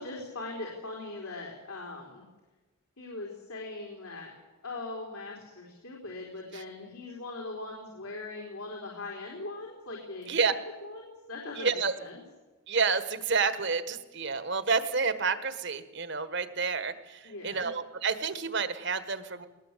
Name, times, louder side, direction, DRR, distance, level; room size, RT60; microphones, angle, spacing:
voice 1, 0.0-2.2 3.0-4.3 4.6-10.5 10.8-12.2 17.2-17.7, left 2 dB, 75° left, -1 dB, 4.4 m, -40 dB
voice 2, 11.6-11.9 12.7-19.5, right 5 dB, 50° right, 12 dB, 1.4 m, -29 dB
20.5 x 19.5 x 8.4 m, 1.2 s
head